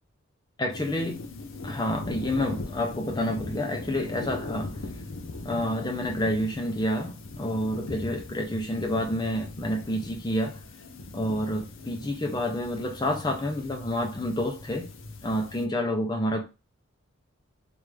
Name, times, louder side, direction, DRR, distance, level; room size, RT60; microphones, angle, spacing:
voice 1, 0.6-1.3 1.6-4.8 5.4-10.6 11.1-14.9 15.2-16.4, left 1 dB, 20° left, 0.6 m, -29 dB
sound 1, 0.7-15.7, left 2 dB, 75° left, 0.6 m, -40 dB
3.4 x 2.6 x 3.2 m
head